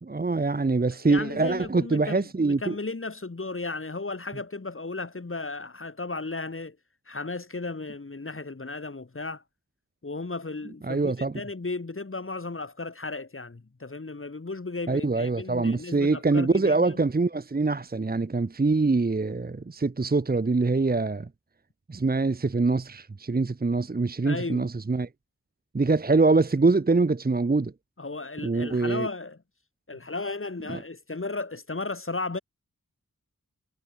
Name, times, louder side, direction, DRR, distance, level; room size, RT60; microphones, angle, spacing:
voice 1, 0.0-2.7 10.9-11.3 14.9-21.3 21.9-25.1 25.7-27.7 28.4-29.1 30.7-30.8, right 3 dB, 30° right, 0.8 m, -24 dB
voice 2, 0.9-6.8 7.1-9.4 10.0-17.0 24.2-24.7 28.0-29.4 29.9-32.4, left 3 dB, 40° left, 2.3 m, -35 dB
wide cardioid pair, 65°, 33 cm